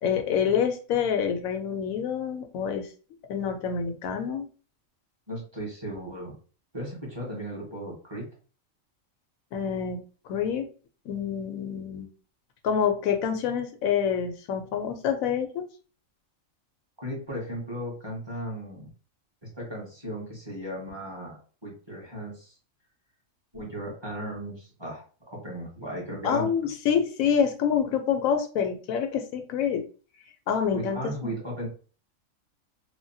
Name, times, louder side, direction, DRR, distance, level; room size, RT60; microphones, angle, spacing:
voice 1, 0.0-2.9 3.3-4.5 9.5-10.0 10.3-10.7 11.1-12.1 12.6-15.7 26.2-29.8 30.5-31.4, left 7 dB, 90° left, 6 dB, 1.0 m, -27 dB
voice 2, 5.3-6.3 6.7-8.3 17.0-18.9 19.4-22.5 23.5-26.5 30.7-31.7, equal, 20° right, -4 dB, 1.2 m, -36 dB
3.4 x 2.1 x 2.6 m, 0.37 s
omnidirectional pair, 1.4 m